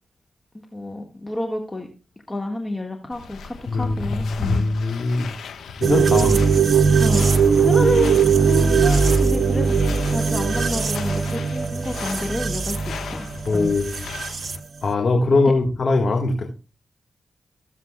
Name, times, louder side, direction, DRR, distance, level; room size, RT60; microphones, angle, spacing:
voice 1, 0.5-1.9 2.3-4.6 6.1-6.6 7.0-13.7, left 1 dB, 25° left, 3 dB, 1.6 m, -29 dB
sound 1, 3.1-14.6, left 5 dB, 85° left, 1.2 m, -35 dB
voice 2, 4.3-5.3 5.8-6.4 13.5-13.9 14.8-16.5, left 3 dB, 60° left, 3 dB, 1.6 m, -21 dB
sound 2, 5.8-14.6, right 5 dB, 60° right, 0.7 m, -20 dB
16.5 x 7.4 x 2.3 m, 0.32 s
supercardioid pair, 40°, 0 cm